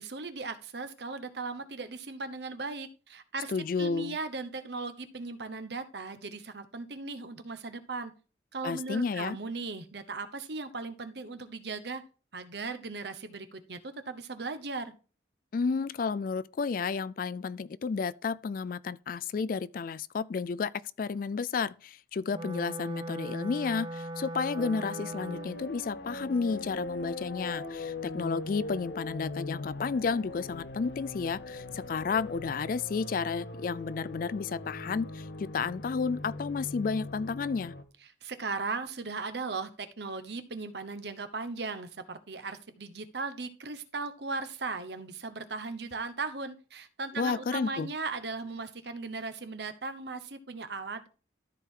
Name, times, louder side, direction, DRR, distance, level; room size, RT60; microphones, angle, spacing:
voice 1, 0.0-3.5 3.8-8.1 8.5-12.0 12.3-14.9 38.2-51.1, right 3 dB, 60° right, 1.0 m, -37 dB
voice 2, 3.5-4.2 8.6-9.4 15.5-20.7 21.0-37.7 47.2-47.9, left 5 dB, 45° left, 0.3 m, -32 dB
Wind instrument woodwind instrument, 22.3-25.7, right 1 dB, 25° right, 0.7 m, -39 dB
sound 1, 24.5-37.8, left 2 dB, 65° left, 1.0 m, -41 dB
13.5 x 4.6 x 3.7 m
head